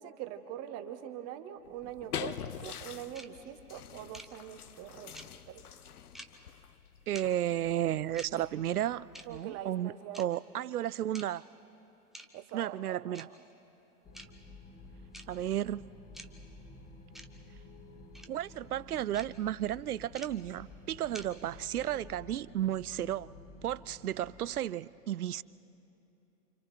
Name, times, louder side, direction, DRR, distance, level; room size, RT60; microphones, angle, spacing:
voice 1, 0.0-5.1 5.5-5.7 9.2-10.2 12.3-13.3, right 11 dB, 30° right, 8 dB, 1.4 m, -43 dB
sound 1, 1.7-9.7, left 9 dB, 75° left, 0.8 m, -45 dB
sound 2, 3.1-3.3 4.1-4.3 5.1-5.3 6.1-6.3 7.1-7.3 8.1-8.3 9.1-9.3 10.1-10.2 11.1-11.3 12.1-12.3 13.1-13.3 14.1-14.3 15.1-15.3 16.1-16.3 17.1-17.3 18.1-18.3 19.1-19.3 20.1-20.3 21.1-21.3, right 1 dB, ahead, 0.7 m, -46 dB
voice 2, 7.1-11.4 12.5-13.3 15.3-15.9 18.3-23.3 23.6-25.4, right 12 dB, 70° right, 21 dB, 0.6 m, -33 dB
sound 3, 14.0-24.6, left 2 dB, 20° left, 2.3 m, -52 dB
29.5 x 26.5 x 4.5 m, 3.0 s
figure-of-eight pair, 100°, 46 cm